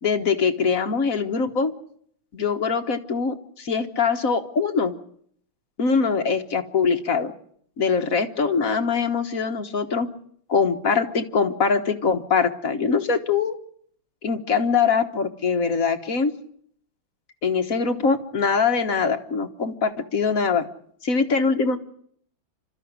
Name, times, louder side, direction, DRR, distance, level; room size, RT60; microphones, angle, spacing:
voice 1, 0.0-1.7 2.3-4.9 5.8-7.3 7.8-10.1 10.5-13.6 14.2-16.3 17.4-20.7 21.0-21.8, left 5 dB, 50° left, 7 dB, 1.6 m, -23 dB
28.0 x 13.0 x 9.5 m, 0.65 s
omnidirectional pair, 2.1 m